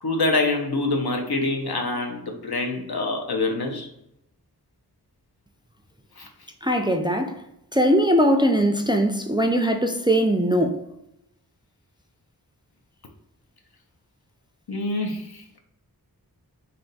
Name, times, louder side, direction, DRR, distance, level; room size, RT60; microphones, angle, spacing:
voice 1, 0.0-3.9 6.2-6.3 14.7-15.4, left 2 dB, 75° left, 0.8 m, -25 dB
voice 2, 6.6-7.4 7.7-10.8, equal, 15° right, 0.4 m, -21 dB
3.4 x 2.8 x 3.9 m
wide cardioid pair, 65°, 38 cm